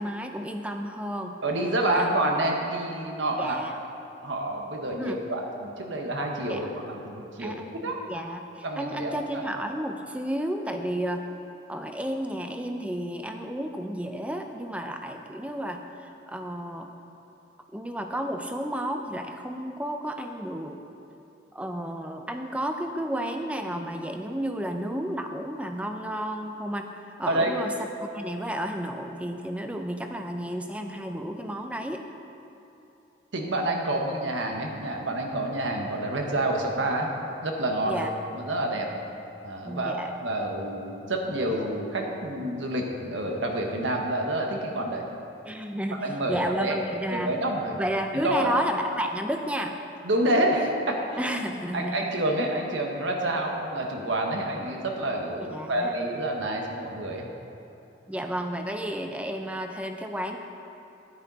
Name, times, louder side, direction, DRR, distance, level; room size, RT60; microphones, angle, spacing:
voice 1, 0.0-1.3 1.9-2.1 3.4-3.7 5.0-5.2 6.5-6.7 7.4-7.8 8.1-8.4 8.8-11.2 11.7-16.9 17.7-20.8 21.5-27.7 28.0-32.0 37.8-38.1 39.6-40.1 45.4-47.3 47.8-49.8 51.2-52.0 55.4-55.9 58.1-60.4, equal, 5° right, 5 dB, 0.5 m, -32 dB
voice 2, 1.4-3.6 4.2-7.6 7.8-8.0 8.6-9.4 27.3-27.5 33.3-37.1 37.4-38.1 38.4-38.9 39.4-40.0 40.2-45.0 46.0-46.7 47.1-47.8 48.2-48.5 50.0-51.0 51.7-57.3, right 1 dB, 85° right, 1 dB, 1.3 m, -28 dB
11.0 x 9.7 x 4.1 m, 2.9 s
head